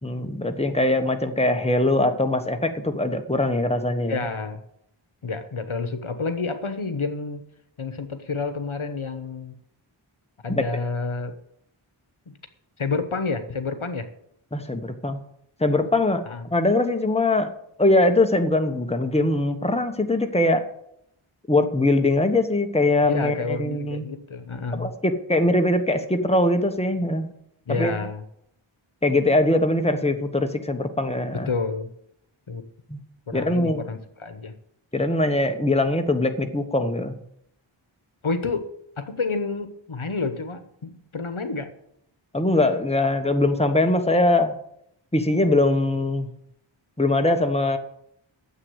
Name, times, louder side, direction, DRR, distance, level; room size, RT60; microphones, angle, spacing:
voice 1, 0.0-4.2 14.5-15.2 15.6-16.2 16.5-17.5 17.8-20.7 21.5-24.0 24.7-27.3 27.7-27.9 29.0-31.5 32.9-33.0 33.3-33.9 34.9-37.2 42.3-44.5 45.1-46.3 47.0-47.8, left 2 dB, 10° left, 6 dB, 1.2 m, -22 dB
voice 2, 4.0-4.6 5.2-7.4 7.8-9.5 10.4-11.4 12.8-14.1 16.3-16.4 23.0-24.9 27.7-28.2 31.3-31.9 32.5-32.6 33.3-34.5 38.2-38.7 39.0-41.7, left 4 dB, 75° left, 9 dB, 1.2 m, -29 dB
9.8 x 7.7 x 8.0 m, 0.74 s
wide cardioid pair, 40°, 50 cm